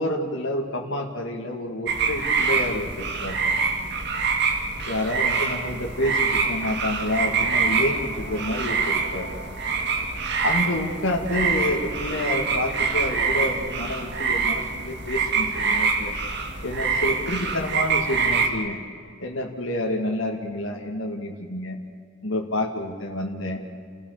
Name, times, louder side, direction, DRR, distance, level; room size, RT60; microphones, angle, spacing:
voice 1, 0.0-2.9 3.2-3.4 4.9-9.3 10.4-16.1 16.6-18.8 19.2-21.8 22.2-23.6, left 1 dB, 65° left, 0 dB, 2.4 m, -28 dB
sound 1, 1.9-18.5, right 5 dB, 55° right, 2.2 m, -25 dB
30.0 x 16.0 x 6.9 m, 2.1 s
head